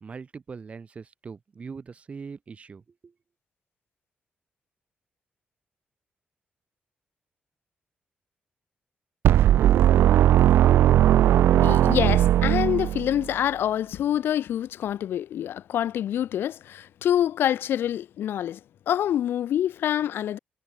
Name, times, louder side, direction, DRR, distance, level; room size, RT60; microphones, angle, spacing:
voice 1, 0.0-3.1, right 5 dB, 35° right, 2.6 m, -41 dB
sound 1, 9.2-13.3, right 12 dB, 85° right, 0.5 m, -18 dB
voice 2, 11.6-18.6 18.9-20.4, left 11 dB, 75° left, 0.7 m, -26 dB
cardioid pair, 135°, 4 cm